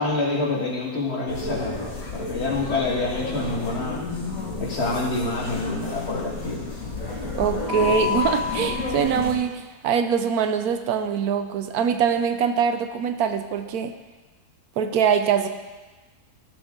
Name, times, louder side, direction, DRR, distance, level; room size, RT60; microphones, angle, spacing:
voice 1, 0.0-4.0 4.6-6.7, left 2 dB, 45° left, -2 dB, 1.8 m, -27 dB
sound 1, 1.3-9.3, left 4 dB, 65° left, 2.2 m, -30 dB
voice 2, 7.4-13.9 14.8-15.5, right 7 dB, 75° right, 8 dB, 1.1 m, -23 dB
13.5 x 6.9 x 3.8 m, 1.2 s
omnidirectional pair, 1.6 m